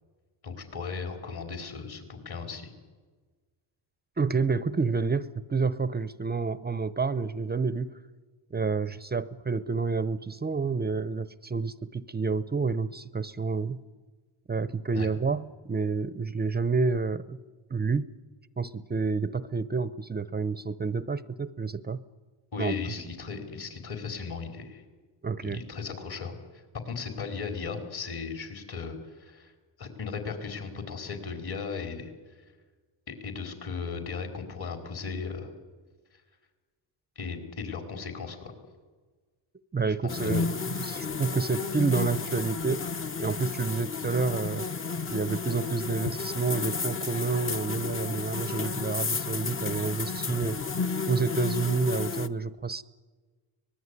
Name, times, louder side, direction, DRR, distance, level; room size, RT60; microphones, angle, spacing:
voice 1, 0.4-2.7 14.9-15.1 22.5-24.8 25.4-29.5 29.8-32.1 33.1-35.5 37.1-38.5 40.0-40.4 40.9-41.0, left 5 dB, 55° left, 5 dB, 5.0 m, -36 dB
voice 2, 4.2-8.0 8.5-13.8 14.5-17.4 17.7-18.1 18.6-22.0 22.6-22.8 25.2-25.6 39.7-40.5 40.8-42.9 43.2-44.7 45.1-50.6 51.1-52.8, right 4 dB, 20° right, 15 dB, 0.7 m, -29 dB
sound 1, 40.1-52.3, left 4 dB, 30° left, 1.0 m, -32 dB
24.5 x 20.0 x 9.9 m, 1.4 s
cardioid pair, 110°, 45 cm